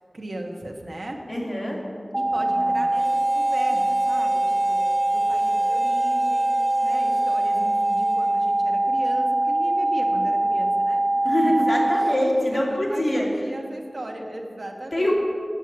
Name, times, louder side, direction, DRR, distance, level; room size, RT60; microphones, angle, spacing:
voice 1, 0.1-1.2 2.2-11.5 12.0-15.1, right 1 dB, 70° right, 1 dB, 1.4 m, -36 dB
voice 2, 1.3-1.8 2.3-2.7 11.3-13.3 14.9-15.1, left 1 dB, 35° left, -3 dB, 2.7 m, -24 dB
sound 1, 2.1-12.1, right 1 dB, 20° right, 0.4 m, -22 dB
Harmonica, 2.9-8.6, right 1 dB, 45° right, 1.8 m, -42 dB
9.1 x 8.2 x 7.5 m, 2.2 s
wide cardioid pair, 65°, 0 cm